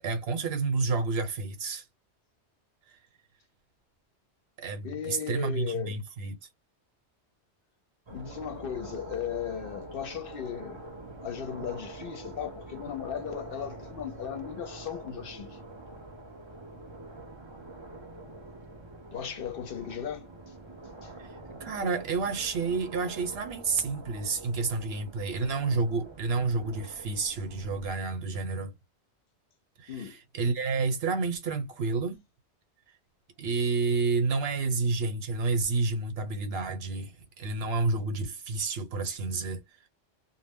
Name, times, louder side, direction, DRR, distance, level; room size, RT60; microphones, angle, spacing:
voice 1, 0.0-1.8 4.6-6.3 21.2-21.3 21.6-28.7 29.8-32.2 33.4-39.6, right 4 dB, 70° right, 1.0 m, -30 dB
voice 2, 4.8-6.0 8.1-10.8 11.2-15.6 19.1-20.3 21.0-21.1 29.9-30.2, left 8 dB, 60° left, 0.7 m, -36 dB
sound 1, 8.1-27.9, right 2 dB, 35° right, 0.6 m, -45 dB
2.1 x 2.0 x 3.5 m
omnidirectional pair, 1.1 m